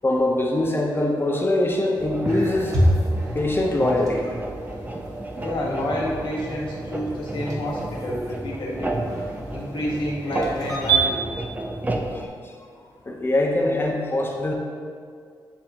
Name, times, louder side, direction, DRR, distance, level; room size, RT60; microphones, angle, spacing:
voice 1, 0.0-2.8 3.3-4.3 12.0-12.5 13.1-14.5, left 1 dB, 25° left, 0 dB, 0.8 m, -23 dB
sound 1, 2.0-12.3, right 1 dB, 20° right, 0.5 m, -32 dB
sound 2, 2.3-11.0, right 2 dB, 45° right, 1.5 m, -29 dB
voice 2, 5.4-8.9 9.5-11.2, left 1 dB, 85° left, -4 dB, 1.5 m, -29 dB
9.8 x 3.5 x 2.9 m, 2.1 s
cardioid pair, 80°, 8 cm